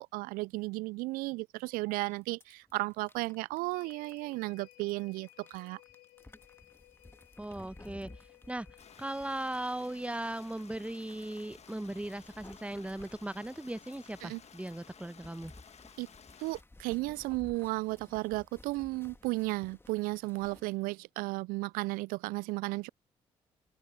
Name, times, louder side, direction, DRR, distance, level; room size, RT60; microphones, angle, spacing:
voice 1, 0.0-5.8 14.2-14.4 16.0-16.1 16.4-22.9, right 23 dB, 70° right, 0.4 m, -34 dB
sound 1, 1.7-1.8 2.1-20.7, left 2 dB, 15° left, 2.2 m, -56 dB
sound 2, 3.7-13.5 13.9-14.0, left 21 dB, 75° left, 4.2 m, -62 dB
voice 2, 7.4-8.1 8.5-8.7 9.0-15.5, right 1 dB, 10° right, 1.1 m, -38 dB
Stream, 8.8-16.6, left 6 dB, 45° left, 1.7 m, -55 dB
open air
hypercardioid pair, 40°, 15 cm